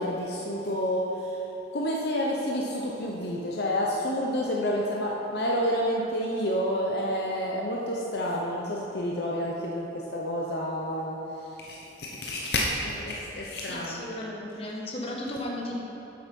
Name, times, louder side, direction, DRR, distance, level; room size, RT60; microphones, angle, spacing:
voice 1, 0.0-1.4 1.7-14.0, equal, 55° left, -3 dB, 0.8 m, -29 dB
voice 2, 13.7-15.8, left 1 dB, 30° left, -2 dB, 1.3 m, -35 dB
8.3 x 8.0 x 5.3 m, 3.0 s
head